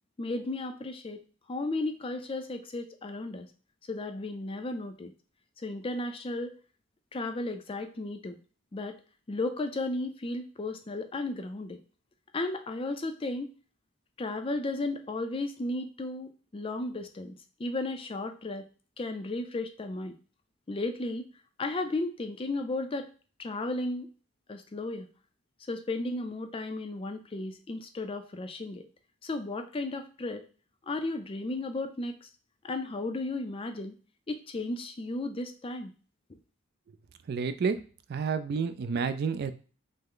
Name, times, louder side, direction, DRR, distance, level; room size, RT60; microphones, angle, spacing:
voice 1, 0.2-1.2 1.5-3.5 3.9-5.1 5.6-6.5 7.1-8.4 8.7-8.9 9.3-11.8 12.3-13.5 14.2-18.6 19.0-20.1 20.7-21.3 21.6-23.1 23.4-24.1 24.5-25.1 25.7-28.9 29.2-30.5 30.9-32.3 32.6-33.9 34.3-35.9, left 2 dB, 25° left, 7 dB, 0.4 m, -34 dB
voice 2, 37.3-37.8 38.1-39.5, right 5 dB, 50° right, 10 dB, 0.3 m, -29 dB
5.4 x 2.0 x 3.8 m, 0.38 s
head